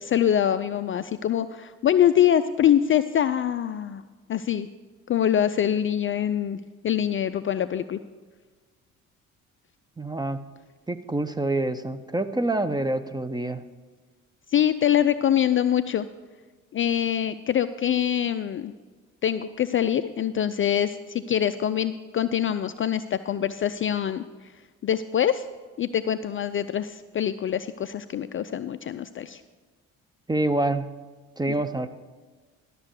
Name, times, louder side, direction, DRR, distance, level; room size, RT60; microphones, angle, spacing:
voice 1, 0.0-4.0 4.3-4.7 5.1-8.0 14.5-16.1 16.7-18.7 19.2-24.2 24.8-25.4 25.8-29.4, left 10 dB, 30° left, 12 dB, 0.4 m, -24 dB
voice 2, 10.0-10.4 10.9-13.6 30.3-30.9 31.4-31.9, right 2 dB, 10° right, 10 dB, 0.7 m, -26 dB
12.5 x 6.8 x 6.4 m, 1.4 s
hypercardioid pair, 50°, 39 cm